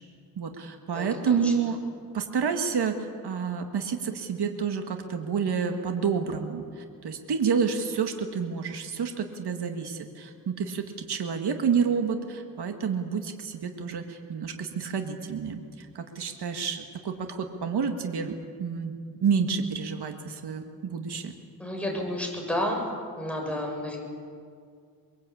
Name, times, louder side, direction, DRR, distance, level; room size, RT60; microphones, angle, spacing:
voice 1, 0.4-1.8 2.1-18.9 19.2-21.3, right 6 dB, 80° right, 5 dB, 1.9 m, -29 dB
voice 2, 0.9-1.5 21.6-22.9 23.2-24.0, left 1 dB, 5° left, 0 dB, 7.0 m, -31 dB
23.0 x 22.5 x 8.6 m, 2.2 s
cardioid pair, 90°, 39 cm